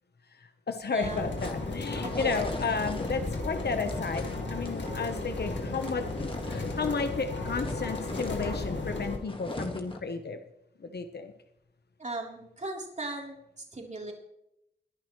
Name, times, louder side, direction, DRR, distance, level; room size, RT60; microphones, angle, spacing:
voice 1, 0.4-4.2 4.5-6.0 6.5-10.4 10.8-11.3, left 4 dB, 65° left, 7 dB, 1.1 m, -33 dB
sound 1, 0.8-7.1 7.4-10.1, left 2 dB, 30° left, 1.8 m, -42 dB
voice 2, 0.9-1.3 2.0-2.4 12.0-14.1, right 2 dB, 40° right, 0 dB, 3.7 m, -37 dB
Grist Mill Process Stop, 1.0-9.2, left 2 dB, 85° left, 2.4 m, -34 dB
21.5 x 11.0 x 3.2 m, 0.79 s
wide cardioid pair, 80°, 18 cm